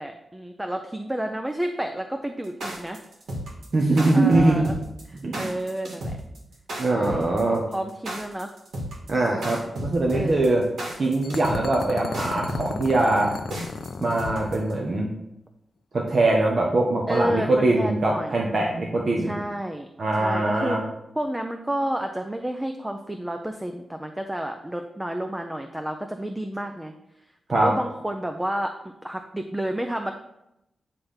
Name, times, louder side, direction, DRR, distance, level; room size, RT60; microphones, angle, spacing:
voice 1, 0.0-3.0 4.1-4.8 5.1-6.2 6.9-7.3 7.7-8.5 10.1-10.4 17.1-18.3 19.2-19.9 20.2-20.8 21.2-26.9 27.5-28.8 29.0-30.1, right 1 dB, 10° right, 5 dB, 0.5 m, -30 dB
sound 1, 2.4-14.7, equal, 90° right, 1.9 m, -33 dB
voice 2, 3.7-4.7 5.2-5.3 6.8-7.6 9.1-10.6 11.0-13.3 14.0-15.1 15.9-19.3 20.0-20.8 27.5-27.7, right 2 dB, 45° right, -2 dB, 1.0 m, -22 dB
sound 2, 11.2-15.1, left 5 dB, 70° left, 0.5 m, -35 dB
9.6 x 3.4 x 5.6 m, 0.85 s
wide cardioid pair, 135°, 0 cm